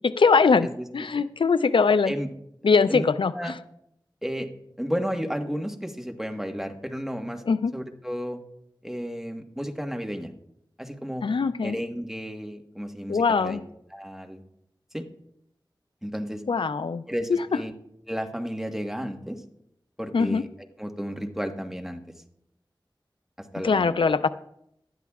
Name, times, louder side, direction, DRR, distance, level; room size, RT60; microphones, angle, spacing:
voice 1, 0.0-0.7 0.9-2.1 2.6-3.5 7.5-7.7 11.2-11.8 13.1-13.6 16.5-17.0 17.3-17.4 20.1-20.4 23.6-24.3, left 5 dB, 85° left, 13 dB, 0.4 m, -21 dB
voice 2, 4.8-7.4 7.7-8.4 8.8-10.3 10.8-11.3 11.6-13.6 13.9-14.4 14.9-15.0 16.0-16.4 17.1-17.7 18.1-19.4 20.0-20.5 20.8-22.0 23.4-24.1, equal, 5° right, 4 dB, 1.3 m, -32 dB
18.5 x 12.5 x 2.4 m, 0.77 s
wide cardioid pair, 60°, 8 cm